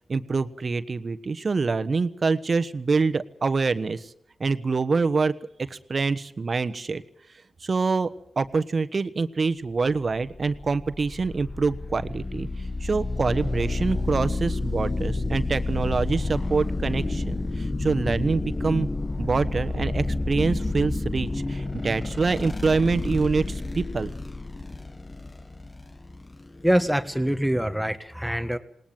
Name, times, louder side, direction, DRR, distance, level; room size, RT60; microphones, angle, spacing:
voice 1, 0.1-4.1 4.4-5.3 5.7-7.0 7.6-8.1 8.4-12.5 12.8-18.9 19.2-24.1, right 4 dB, 50° right, 12 dB, 1.2 m, -25 dB
sound 1, 10.2-27.4, left 2 dB, 30° left, 1.2 m, -30 dB
voice 2, 26.6-28.6, equal, ahead, 10 dB, 1.5 m, -24 dB
20.0 x 19.0 x 9.1 m, 0.69 s
supercardioid pair, 45°, 0 cm